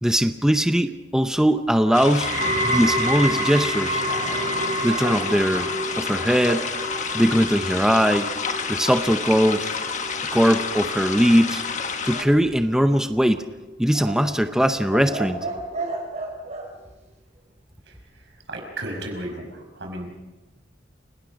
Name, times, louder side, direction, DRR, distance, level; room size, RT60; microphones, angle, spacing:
voice 1, 0.0-2.3 2.6-4.0 4.8-5.7 6.0-6.7 7.1-8.3 8.7-9.7 10.3-11.6 12.0-13.4 13.8-15.4, equal, 5° right, 8 dB, 0.7 m, -20 dB
sound 1, 1.9-12.2, left 5 dB, 45° left, 1.4 m, -30 dB
sound 2, 2.2-13.3 13.6-14.1 14.8-14.9, right 1 dB, 65° right, 5.5 m, -29 dB
sound 3, 4.0-6.7 12.0-12.9 13.9-16.7, right 2 dB, 40° right, 4.4 m, -34 dB
voice 2, 18.5-20.1, right 1 dB, 80° right, 3 dB, 5.5 m, -33 dB
30.0 x 18.5 x 5.2 m, 1.1 s
head